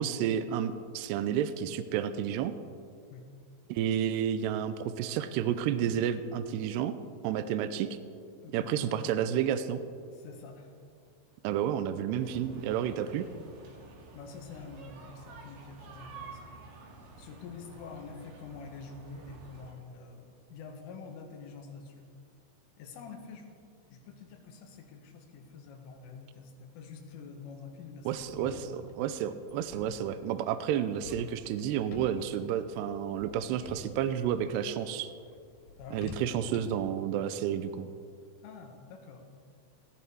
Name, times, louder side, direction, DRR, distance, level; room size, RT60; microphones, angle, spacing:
voice 1, 0.0-2.5 3.7-6.9 7.2-8.0 8.5-9.8 11.4-13.3 28.1-35.1 35.9-37.9, right 9 dB, 85° right, 11 dB, 2.4 m, -31 dB
voice 2, 8.4-8.9 10.1-10.7 14.1-16.5 17.2-22.1 22.8-23.5 23.9-28.9 35.8-36.1 38.4-39.3, left 4 dB, 85° left, 3 dB, 4.2 m, -47 dB
sound 1, 12.2-19.7, right 3 dB, 70° right, 4.4 m, -50 dB
sound 2, 28.1-36.9, left 3 dB, 55° left, 3.3 m, -50 dB
17.5 x 16.0 x 4.7 m, 2.2 s
omnidirectional pair, 5.6 m